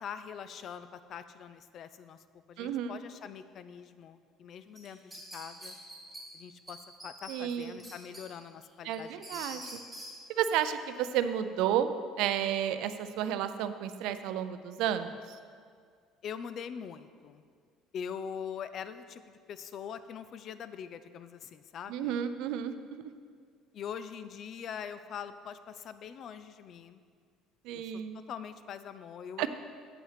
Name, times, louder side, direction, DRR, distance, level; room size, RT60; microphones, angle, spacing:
voice 1, 0.0-5.7 6.3-9.6 16.2-17.4 17.9-22.2 23.7-27.0 27.7-27.9 28.3-29.5, left 7 dB, 40° left, 12 dB, 0.3 m, -43 dB
voice 2, 2.6-3.0 7.3-7.9 8.8-9.8 10.3-11.9 12.2-15.4 21.9-23.0 27.6-28.1 29.4-29.5, right 10 dB, 70° right, 11 dB, 0.4 m, -32 dB
sound 1, 4.7-6.2 6.7-6.8 7.0-8.2 8.6-10.1, right 1 dB, ahead, 2.2 m, -44 dB
7.8 x 5.7 x 5.7 m, 2.1 s
cardioid pair, 160°, 0 cm